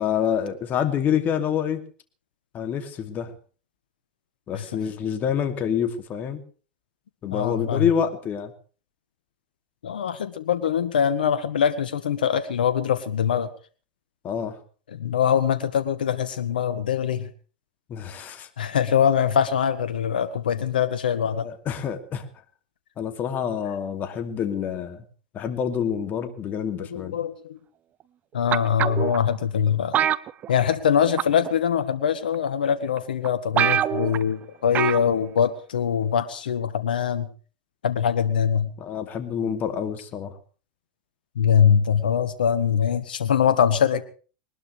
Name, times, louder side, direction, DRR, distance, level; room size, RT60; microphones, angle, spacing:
voice 1, 0.0-1.8 2.5-3.3 4.5-6.4 7.2-8.5 14.2-14.6 17.9-18.5 21.4-22.3 23.0-25.0 25.3-27.2 35.1-35.2 38.8-40.4, left 8 dB, 35° left, 7 dB, 2.6 m, -27 dB
voice 2, 7.3-7.9 9.8-13.5 14.9-17.3 18.6-21.5 26.9-27.6 28.3-30.0 30.5-37.3 37.8-38.7 41.3-44.0, left 8 dB, 85° left, 11 dB, 1.4 m, -23 dB
sound 1, 28.5-29.2 29.9-30.9 31.2-31.5 32.3-32.4 33.0-33.1 33.2-33.3 33.6-34.2 34.7-35.1 35.4-35.5, right 10 dB, 35° right, 0.8 m, -24 dB
22.0 x 20.0 x 3.4 m, 0.39 s
hypercardioid pair, 105°, 5 cm